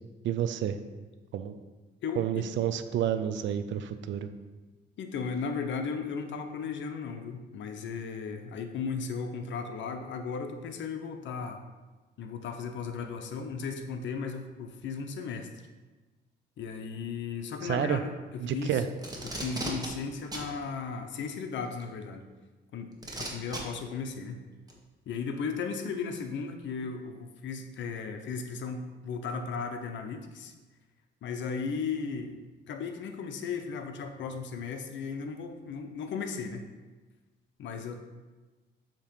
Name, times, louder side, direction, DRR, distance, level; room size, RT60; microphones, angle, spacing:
voice 1, 0.2-0.8 1.3-1.5 2.2-4.3 17.6-18.0 18.4-18.9, right 10 dB, 70° right, 11 dB, 0.5 m, -29 dB
voice 2, 2.0-2.5 5.0-11.6 12.2-15.5 16.6-18.8 19.2-22.2 22.7-24.4 25.1-30.5 31.2-32.4 32.7-36.7 37.6-38.0, left 5 dB, 70° left, 6 dB, 0.7 m, -36 dB
Packing tape duct tape, 19.0-19.9 20.3-20.5 21.8-21.9 23.0-23.6 24.7-24.8, right 2 dB, 20° right, 1.3 m, -36 dB
7.2 x 3.0 x 5.1 m, 1.3 s
cardioid pair, 90°, 20 cm